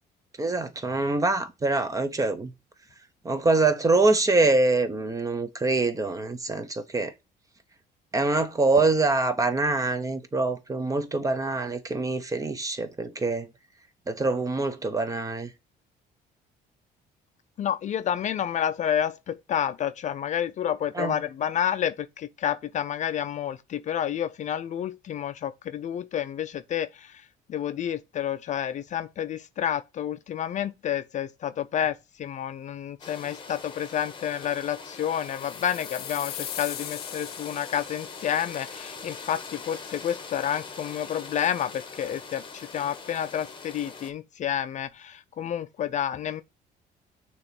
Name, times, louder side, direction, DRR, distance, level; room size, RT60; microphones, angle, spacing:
voice 1, 0.4-2.5 3.2-7.1 8.1-13.5 14.1-15.5 20.9-21.2, right 3 dB, 20° right, 0.9 m, -25 dB
voice 2, 17.6-46.4, left 9 dB, 45° left, 0.4 m, -30 dB
sound 1, 33.0-44.1, left 5 dB, 30° left, 1.2 m, -42 dB
sound 2, 35.2-38.4, left 11 dB, 65° left, 0.8 m, -39 dB
6.6 x 3.0 x 5.9 m
cardioid pair, 110°, 17 cm